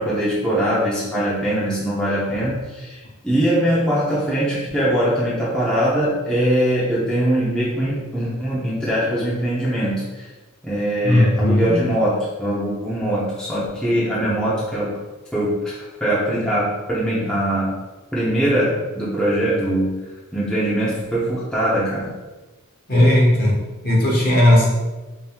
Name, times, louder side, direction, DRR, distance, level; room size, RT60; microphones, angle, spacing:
voice 1, 0.0-10.3 10.6-15.0 15.3-17.8 18.1-20.1 20.3-22.1, right 1 dB, 5° left, -9 dB, 0.7 m, -22 dB
voice 2, 11.0-11.8 22.9-23.6 23.8-24.7, left 1 dB, 45° left, -4 dB, 1.2 m, -16 dB
5.1 x 2.8 x 2.3 m, 1.2 s
head